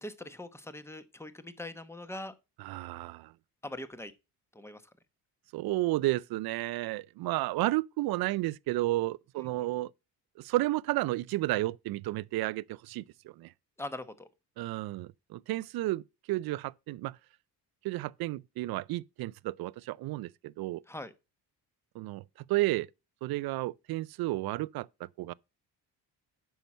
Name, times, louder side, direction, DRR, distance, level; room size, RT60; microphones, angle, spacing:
voice 1, 0.0-2.3 3.6-4.1 4.5-4.9 9.4-9.6 13.8-14.3 20.9-21.1, left 1 dB, 5° left, 1.0 m, -42 dB
voice 2, 2.6-3.3 5.5-9.9 10.4-13.5 14.6-17.2 17.8-20.8 21.9-22.9 23.2-25.3, right 17 dB, 65° right, 0.5 m, -32 dB
9.2 x 5.9 x 4.2 m
cardioid pair, 95°, 39 cm